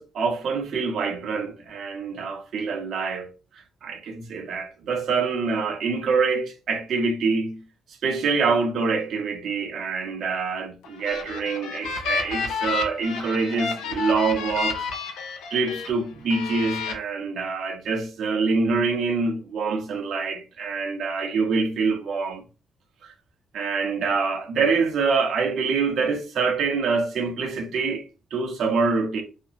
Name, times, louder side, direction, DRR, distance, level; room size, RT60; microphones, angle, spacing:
voice 1, 0.0-3.3 3.8-7.6 8.0-14.8 15.5-22.4 23.5-28.0 28.3-29.2, right 4 dB, 65° right, 0.6 m, -25 dB
sound 1, 10.8-15.9 16.3-16.9, left 5 dB, 90° left, 0.6 m, -30 dB
2.5 x 2.1 x 2.7 m
cardioid pair, 90°, 0 cm